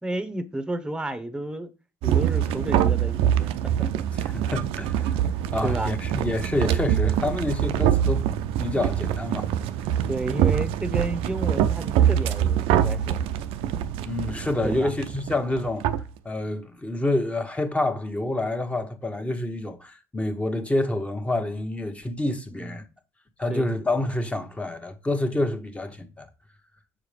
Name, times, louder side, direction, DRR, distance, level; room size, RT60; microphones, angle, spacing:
voice 1, 0.0-1.7 2.0-3.5 3.8-3.9 5.6-5.9 10.1-13.2 14.6-14.9 22.5-22.8 23.5-23.7, right 1 dB, 10° right, 0.9 m, -31 dB
sound 1, 2.0-16.1, right 10 dB, 75° right, 0.5 m, -24 dB
voice 2, 4.1-5.2 5.5-8.3 8.6-9.5 14.0-15.9 16.2-22.8 23.4-26.3, left 2 dB, 15° left, 1.2 m, -28 dB
6.5 x 4.8 x 3.3 m
supercardioid pair, 75°, 10 cm